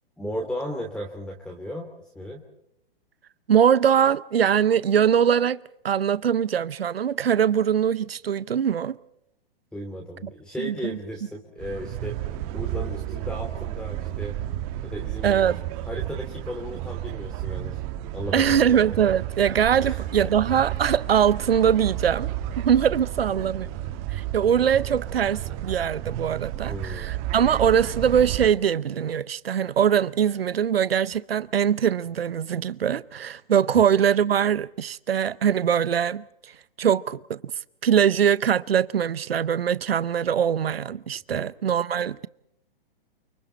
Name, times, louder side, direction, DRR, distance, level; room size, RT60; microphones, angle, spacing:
voice 1, 0.2-1.9 2.1-2.4 9.7-12.2 12.5-14.4 14.8-15.4 15.8-17.8 18.1-18.7 19.8-20.0 23.2-23.5 26.7-27.1 33.7-33.8 41.3-41.4, equal, 5° left, 2.9 m, -35 dB
voice 2, 3.5-5.6 5.8-9.0 10.6-11.0 15.2-15.6 18.3-23.7 24.1-36.5 36.8-37.4 37.8-42.3, right 8 dB, 85° right, 0.8 m, -22 dB
sound 1, 11.6-28.5, right 13 dB, 35° right, 1.5 m, -32 dB
29.5 x 25.0 x 4.3 m
hypercardioid pair, 125°, 29 cm